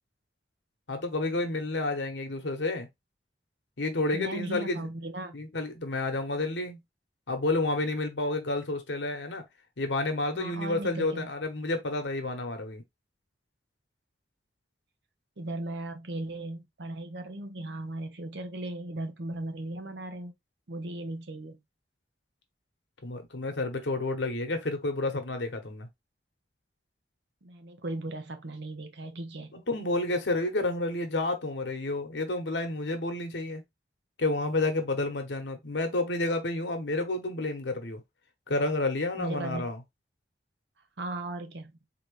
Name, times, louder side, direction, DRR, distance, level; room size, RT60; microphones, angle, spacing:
voice 1, 0.9-2.9 3.8-4.9 5.3-6.8 7.3-9.4 9.8-12.8 23.0-25.9 29.5-33.6 34.2-38.0 38.5-39.8, left 2 dB, 90° left, 1.0 m, -30 dB
voice 2, 4.1-5.4 10.4-11.3 15.4-20.3 20.7-21.6 27.4-29.5 39.2-39.7 41.0-41.7, right 2 dB, 80° right, 0.8 m, -37 dB
3.8 x 2.9 x 3.1 m
head